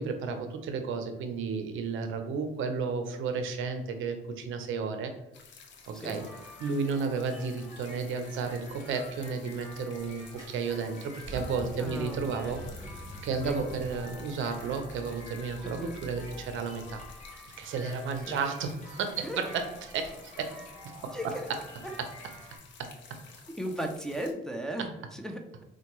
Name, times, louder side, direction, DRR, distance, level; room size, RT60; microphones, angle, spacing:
voice 1, 0.0-5.1 5.9-6.2 6.6-12.6 13.2-17.0 17.6-19.7 19.9-20.5 22.0-22.1 22.8-22.9, right 5 dB, 80° right, 7 dB, 0.5 m, -32 dB
Mountain stream, 5.3-24.3, left 5 dB, 65° left, 0.6 m, -53 dB
sound 1, 6.0-22.6, left 1 dB, 35° left, 1.0 m, -50 dB
sound 2, 9.0-22.0, right 1 dB, 15° right, 1.1 m, -48 dB
voice 2, 11.8-12.6 13.4-13.6 15.6-16.0 18.3-18.4 19.2-19.5 21.1-21.5 21.8-21.9 23.6-25.6, equal, 5° left, 2 dB, 0.5 m, -36 dB
4.3 x 2.2 x 3.0 m, 0.90 s
cardioid pair, 90°, 20 cm